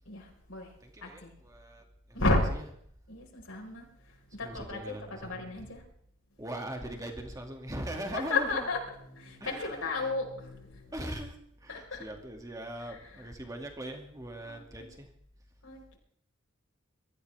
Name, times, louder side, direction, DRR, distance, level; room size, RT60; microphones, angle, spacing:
voice 1, 0.0-1.3 2.1-2.5 3.1-5.8 8.1-10.9 11.7-12.0 12.9-13.3 14.4-14.6 15.6-16.0, left 2 dB, 70° left, 0 dB, 4.8 m, -33 dB
voice 2, 0.8-2.2 2.6-2.7 4.4-5.7 6.4-8.7 9.4-10.1 10.9-15.1, right 1 dB, 15° right, 3 dB, 2.4 m, -41 dB
23.5 x 14.5 x 3.5 m, 0.65 s
head